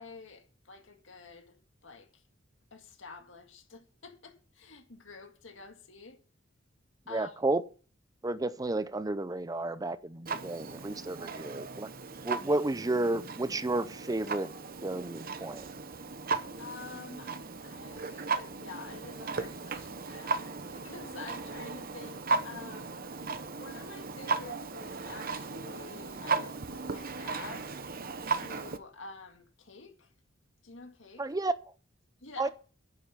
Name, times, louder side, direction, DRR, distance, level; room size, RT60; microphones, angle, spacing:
voice 1, 0.0-2.2 2.7-6.2 7.1-7.3 16.6-23.0 23.6-27.7 28.3-30.1 30.6-31.3 32.2-32.5, left 4 dB, 70° left, 2.1 m, -48 dB
voice 2, 7.1-7.6 8.2-11.9 12.2-14.5 14.8-15.7 31.2-31.5 32.4-32.5, right 2 dB, 20° right, 0.6 m, -32 dB
Clock, 10.3-28.8, right 4 dB, 50° right, 1.0 m, -36 dB
9.9 x 9.9 x 5.7 m
head